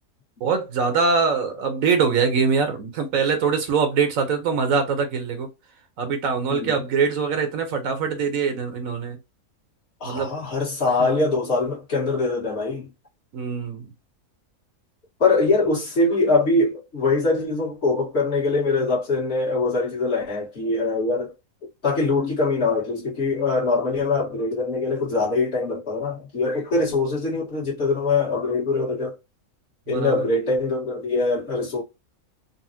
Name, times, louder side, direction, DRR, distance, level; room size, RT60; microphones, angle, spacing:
voice 1, 0.4-5.5 6.0-9.2 10.0-10.4 13.3-13.9 29.9-30.2, right 5 dB, 70° right, 1.1 m, -23 dB
voice 2, 6.5-6.8 10.0-12.9 15.2-21.3 21.8-29.1 29.9-31.8, left 3 dB, 50° left, 1.5 m, -23 dB
4.1 x 2.1 x 2.6 m
omnidirectional pair, 1.5 m